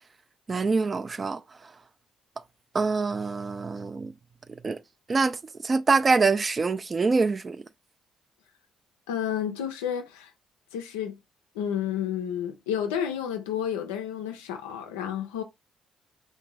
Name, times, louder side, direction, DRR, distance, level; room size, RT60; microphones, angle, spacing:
voice 1, 0.5-1.4 2.7-4.1 4.6-4.8 5.1-7.6, right 4 dB, 35° right, 0.3 m, -25 dB
voice 2, 9.1-10.3 10.7-11.2 11.5-15.4, left 9 dB, 80° left, 0.3 m, -31 dB
2.5 x 2.1 x 3.0 m
hypercardioid pair, 45°, 0 cm